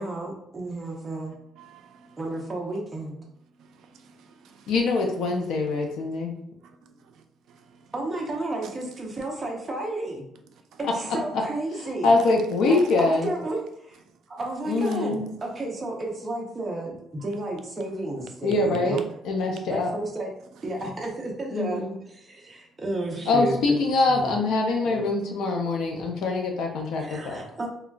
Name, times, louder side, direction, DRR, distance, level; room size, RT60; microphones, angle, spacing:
voice 1, 0.0-1.3 2.2-3.2 7.9-10.2 10.8-12.1 12.7-14.0 14.3-19.0 19.7-20.3 20.6-21.8 22.1-23.8 24.1-24.3 24.8-25.0 27.0-27.7, right 2 dB, 20° right, 0.6 m, -32 dB
voice 2, 1.6-2.2 3.6-4.7 6.8-7.2 7.5-7.8 10.7-10.8, right 6 dB, 70° right, 0.3 m, -54 dB
voice 3, 4.7-6.4 11.1-11.4 11.8-13.3 14.7-15.2 18.4-19.9 21.5-22.0 23.3-27.7, left 3 dB, 70° left, 0.5 m, -24 dB
3.8 x 2.2 x 2.2 m
cardioid pair, 160°, 0 cm